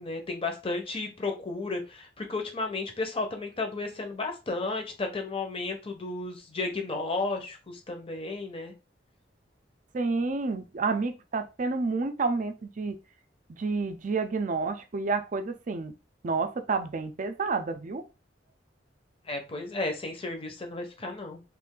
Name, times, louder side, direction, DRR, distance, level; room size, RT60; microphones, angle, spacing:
voice 1, 0.0-8.7 19.2-21.4, left 3 dB, 30° left, 4 dB, 0.8 m, -33 dB
voice 2, 9.9-13.0 13.5-16.0 16.2-18.0, right 4 dB, 45° right, 9 dB, 0.5 m, -29 dB
3.1 x 2.5 x 3.7 m, 0.30 s
head